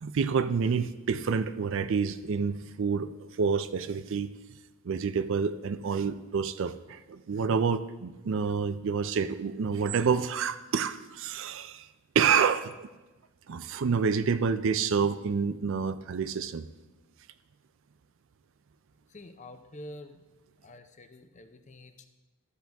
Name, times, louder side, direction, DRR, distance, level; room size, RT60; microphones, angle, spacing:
voice 1, 0.0-4.3 4.8-11.9 12.1-12.9 13.5-16.6, right 6 dB, 60° right, 12 dB, 0.4 m, -28 dB
voice 2, 19.1-20.2 20.6-22.1, left 1 dB, 30° left, 8 dB, 0.6 m, -47 dB
12.5 x 7.5 x 3.5 m, 1.1 s
head